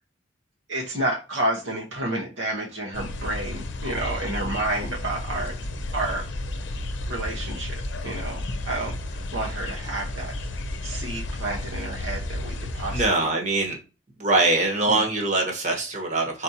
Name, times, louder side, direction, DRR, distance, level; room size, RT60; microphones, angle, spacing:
voice 1, 0.7-5.6 5.9-6.3 7.1-10.4 10.8-13.3 14.9-15.0, right 1 dB, 75° right, 1.1 m, -30 dB
sound 1, 2.9-13.1, left 1 dB, 75° left, 0.7 m, -32 dB
voice 2, 12.9-13.8 14.2-16.4, right 2 dB, 40° right, 1.2 m, -23 dB
4.4 x 4.3 x 2.7 m
head